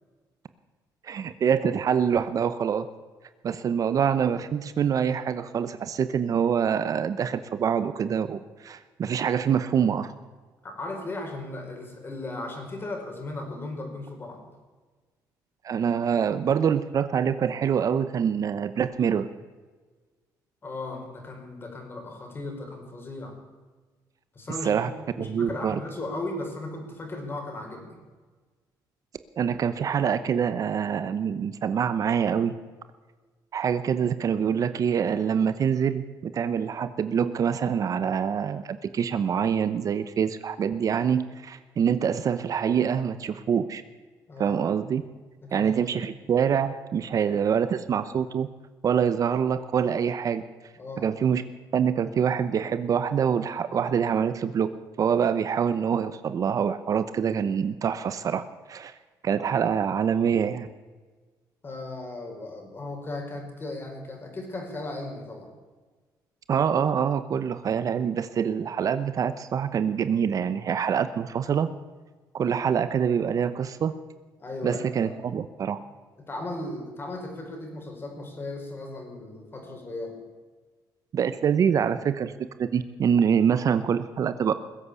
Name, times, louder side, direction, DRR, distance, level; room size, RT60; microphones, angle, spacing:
voice 1, 1.0-2.9 3.4-10.1 15.6-19.3 24.6-24.9 25.2-25.8 29.4-32.5 33.5-43.8 44.4-45.0 45.5-48.5 48.8-50.4 51.0-51.4 51.7-54.7 55.0-58.9 59.2-60.7 66.5-71.7 72.3-73.9 74.6-75.8 81.1-82.3 82.6-84.5, right 7 dB, 50° right, 12 dB, 0.9 m, -25 dB
voice 2, 10.6-14.4 20.6-23.4 24.3-28.0 44.3-44.6 45.4-46.1 50.8-51.1 61.6-65.5 74.4-75.2 76.2-80.2, left 2 dB, 30° left, 3 dB, 5.2 m, -36 dB
21.0 x 8.1 x 8.3 m, 1.4 s
cardioid pair, 105°, 8 cm